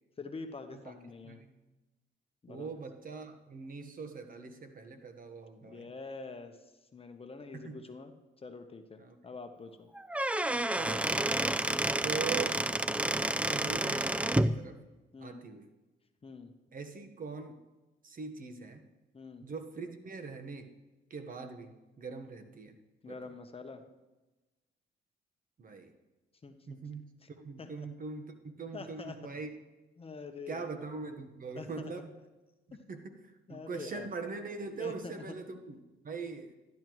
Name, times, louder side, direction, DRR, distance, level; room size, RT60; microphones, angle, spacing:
voice 1, 0.2-1.4 2.4-2.7 5.6-9.9 15.1-15.4 16.2-16.5 19.1-19.5 23.0-23.8 26.4-26.8 27.2-27.3 27.6-27.9 28.7-29.1 30.0-30.7 31.6-31.9 32.7-32.8 33.5-34.1 34.8-35.4, left 4 dB, 30° left, 7 dB, 0.9 m, -45 dB
voice 2, 2.5-5.9 7.5-7.8 9.0-9.2 10.7-11.4 12.0-12.6 13.5-14.8 15.2-15.7 16.7-17.6 18.0-18.8 19.4-20.7 21.1-22.8 23.1-23.3 25.6-25.9 26.7-27.0 27.4-29.5 30.5-32.2 32.7-33.1 33.5-36.5, right 4 dB, 45° right, 7 dB, 1.2 m, -42 dB
Squeak / Wood, 10.0-14.5, right 1 dB, 5° right, 0.3 m, -30 dB
13.5 x 10.5 x 3.1 m, 1.1 s
cardioid pair, 90°, 20 cm